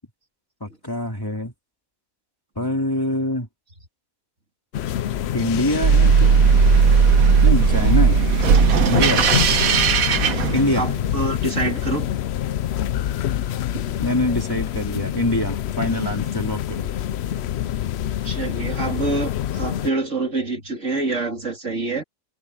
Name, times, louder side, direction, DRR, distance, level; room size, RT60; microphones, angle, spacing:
voice 1, 0.6-1.5 2.6-3.5 5.3-6.4 7.4-8.2 8.8-9.3 10.5-10.9 14.0-16.9, left 1 dB, 15° left, 3.1 m, -24 dB
sound 1, 4.7-19.9, left 11 dB, 60° left, 0.7 m, -26 dB
sound 2, 5.8-11.1, right 6 dB, 70° right, 1.5 m, -16 dB
voice 2, 10.7-12.1 13.7-14.0 18.2-22.0, right 3 dB, 55° right, 3.4 m, -26 dB
omnidirectional pair, 1.6 m